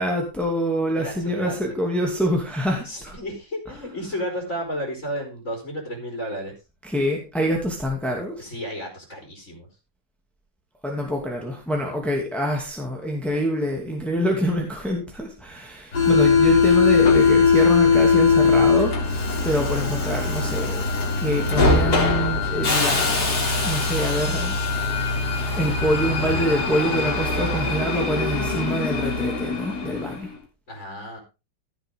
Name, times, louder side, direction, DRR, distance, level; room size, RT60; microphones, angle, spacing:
voice 1, 0.0-3.1 6.8-8.5 10.8-23.3 23.6-24.5 25.6-30.3, equal, ahead, 0 dB, 2.5 m, -26 dB
voice 2, 0.9-1.6 2.8-6.5 8.4-9.7 30.7-31.2, equal, 50° left, 0 dB, 4.5 m, -32 dB
Subway metro underground, 15.9-30.3, left 4 dB, 80° left, 3.6 m, -21 dB
15.5 x 8.0 x 3.7 m, 0.28 s
omnidirectional pair, 1.7 m